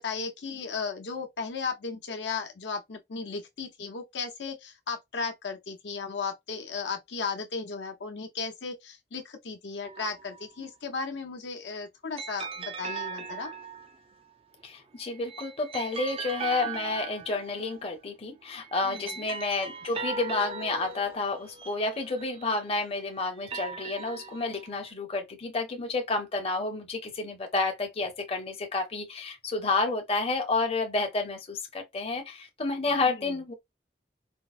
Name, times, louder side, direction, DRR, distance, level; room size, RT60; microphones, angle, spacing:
voice 1, 0.0-13.5 18.8-19.1 33.1-33.3, left 4 dB, 80° left, 0.8 m, -35 dB
sound 1, 9.8-10.6 12.2-14.1 15.1-17.9 18.6-22.7 23.3-24.9, right 5 dB, 35° right, 0.4 m, -39 dB
voice 2, 14.6-33.5, left 3 dB, 35° left, 0.7 m, -30 dB
4.4 x 2.1 x 2.4 m
head